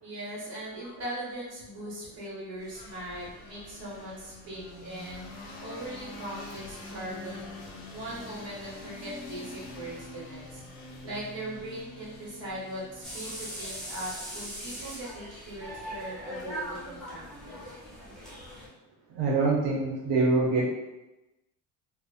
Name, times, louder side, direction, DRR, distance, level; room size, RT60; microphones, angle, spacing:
voice 1, 0.0-7.5 7.9-10.6 11.0-17.8, right 1 dB, 35° right, -6 dB, 1.2 m, -40 dB
sound 1, 2.6-14.3, left 2 dB, 60° left, 0.7 m, -45 dB
sound 2, 13.0-18.7, equal, ahead, 0.5 m, -40 dB
voice 2, 19.1-20.7, right 3 dB, 70° right, -5 dB, 0.7 m, -25 dB
2.7 x 2.0 x 2.4 m, 0.99 s
cardioid pair, 145°, 41 cm